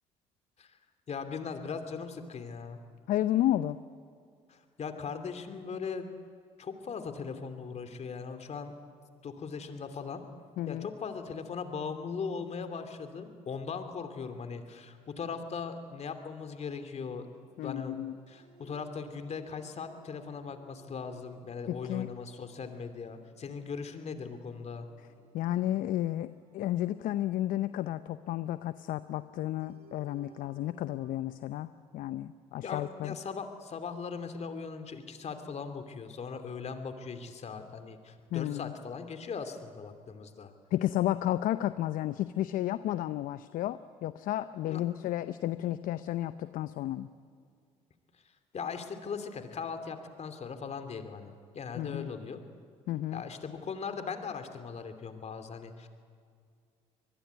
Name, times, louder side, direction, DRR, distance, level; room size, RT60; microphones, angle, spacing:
voice 1, 1.1-2.8 4.5-6.1 6.6-8.7 9.2-10.2 10.7-17.3 17.6-18.0 18.3-24.9 32.6-40.5 44.6-44.8 48.5-52.4 53.1-55.9, left 5 dB, 45° left, 8 dB, 2.8 m, -39 dB
voice 2, 3.1-3.8 10.6-10.9 17.6-18.2 21.7-22.1 25.3-33.2 38.3-38.7 40.7-47.1 51.7-52.1 52.9-53.2, left 13 dB, 65° left, 13 dB, 0.7 m, -32 dB
sound 1, 17.3-31.1, right 2 dB, 75° right, 3.2 m, -62 dB
25.0 x 20.5 x 9.2 m, 2.2 s
hypercardioid pair, 60°, 15 cm